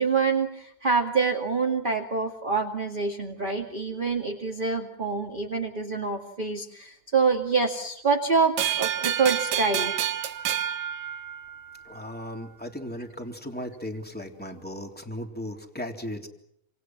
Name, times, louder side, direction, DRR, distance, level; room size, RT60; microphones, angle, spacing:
voice 1, 0.0-9.9, right 4 dB, 20° right, 1 dB, 1.7 m, -26 dB
sound 1, 8.6-11.8, right 11 dB, 75° right, 2.9 m, -29 dB
voice 2, 11.8-16.3, left 1 dB, 5° left, 3 dB, 2.8 m, -36 dB
28.0 x 27.5 x 6.0 m, 0.77 s
omnidirectional pair, 4.0 m